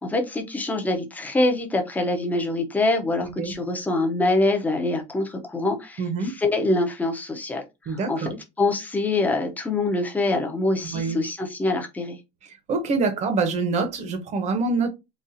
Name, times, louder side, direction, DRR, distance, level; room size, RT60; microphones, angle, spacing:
voice 1, 0.0-8.3 8.6-12.2, left 2 dB, 10° left, 0.6 m, -25 dB
voice 2, 3.2-3.5 6.0-6.3 7.9-8.4 10.9-11.2 12.7-14.9, right 4 dB, 35° right, 0.8 m, -25 dB
4.0 x 2.4 x 2.5 m
cardioid pair, 150°, 20 cm